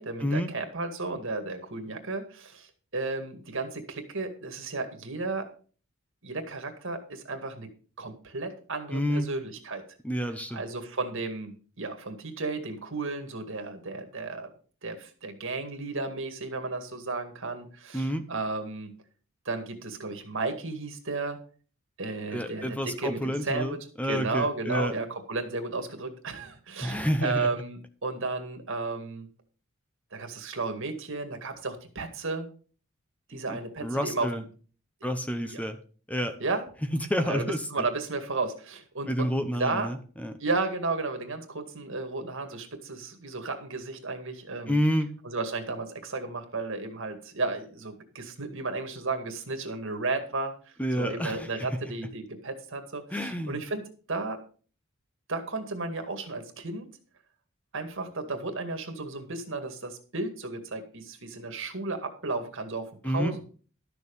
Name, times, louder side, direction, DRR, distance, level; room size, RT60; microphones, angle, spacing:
voice 1, 0.0-5.4 6.2-7.7 8.0-9.8 10.5-14.5 14.8-18.9 19.5-21.4 22.0-23.8 24.0-29.3 30.1-32.5 33.3-34.4 35.4-35.6 36.4-36.6 37.2-39.3 39.6-39.9 40.4-44.8 45.2-50.5 51.0-53.8 54.1-54.4 55.3-56.9 57.7-63.4, right 3 dB, 65° right, 6 dB, 2.1 m, -33 dB
voice 2, 8.9-9.3 10.0-10.6 17.9-18.3 22.3-24.9 26.8-27.5 33.5-34.4 35.0-35.8 36.1-36.4 37.0-37.6 39.1-40.3 44.7-45.1 50.8-51.8 53.1-53.6 63.0-63.4, equal, 5° left, 8 dB, 0.8 m, -29 dB
12.5 x 6.8 x 5.3 m, 0.40 s
head